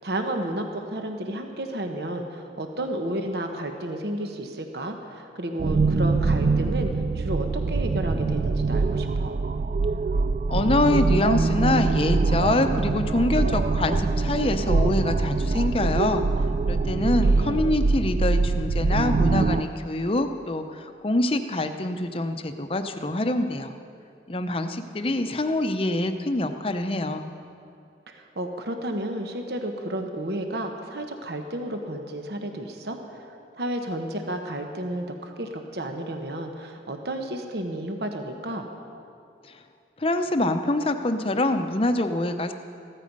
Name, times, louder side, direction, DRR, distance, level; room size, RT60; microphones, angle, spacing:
voice 1, 0.0-9.4 17.2-17.7 28.1-33.3 33.6-38.7, right 1 dB, 65° right, 5 dB, 1.1 m, -32 dB
sound 1, 5.6-19.6, right 3 dB, 45° right, 0.3 m, -23 dB
voice 2, 10.5-16.2 16.6-23.7 24.3-27.3 40.0-42.5, left 2 dB, 30° left, 8 dB, 0.7 m, -25 dB
15.5 x 13.5 x 5.4 m, 2.5 s
head